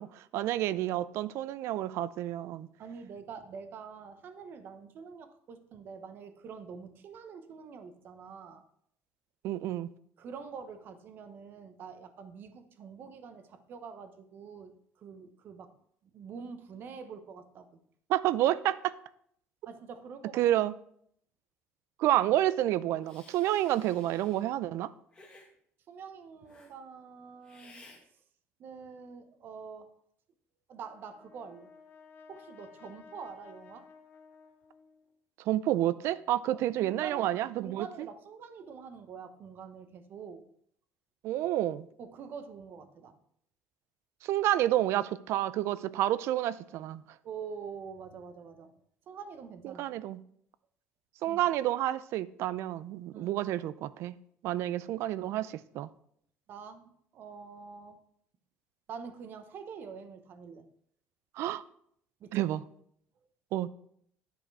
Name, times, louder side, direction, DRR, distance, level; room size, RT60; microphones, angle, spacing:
voice 1, 0.0-2.7 9.4-9.9 18.1-18.9 20.4-20.7 22.0-24.9 35.5-37.9 41.2-41.9 44.2-47.0 49.6-50.2 51.2-54.2 54.4-55.9 61.4-61.6 62.3-62.6 63.5-63.7, right 13 dB, 60° right, 0.4 m, -29 dB
voice 2, 2.8-8.6 10.2-15.7 16.1-17.7 19.7-20.4 25.9-27.9 28.6-29.9 30.7-31.7 32.3-33.9 36.5-40.4 42.0-43.2 47.2-48.7 49.1-49.8 51.3-51.4 53.1-53.4 56.5-58.0 58.9-60.7 62.2-62.5, right 6 dB, 45° right, 0.9 m, -46 dB
Hiss, 23.0-24.4 25.1-25.5 26.5-26.7 27.4-28.0, left 2 dB, 20° left, 1.5 m, -56 dB
Brass instrument, 30.7-35.2, left 5 dB, 45° left, 1.1 m, -55 dB
10.0 x 5.1 x 4.7 m
cardioid pair, 155°, 5 cm